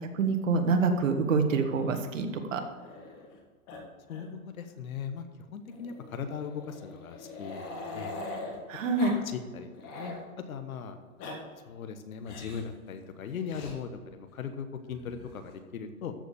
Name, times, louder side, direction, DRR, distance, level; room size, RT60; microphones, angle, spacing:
voice 1, 0.1-2.6 8.7-9.1, right 4 dB, 60° right, 5 dB, 1.7 m, -26 dB
Growling, 1.5-3.4 3.7-3.8 4.1-4.3 4.6-4.7 5.7-8.6 9.0-9.2 9.5-10.2 11.0-11.4 12.2-12.7 13.5-13.8 14.9-15.5, left 2 dB, 25° left, 1.7 m, -43 dB
voice 2, 4.1-5.2 5.5-8.1 9.2-10.1 10.5-11.0 11.6-16.1, left 6 dB, 70° left, 8 dB, 1.2 m, -39 dB
13.5 x 5.1 x 6.9 m, 1.5 s
hypercardioid pair, 155°, 43 cm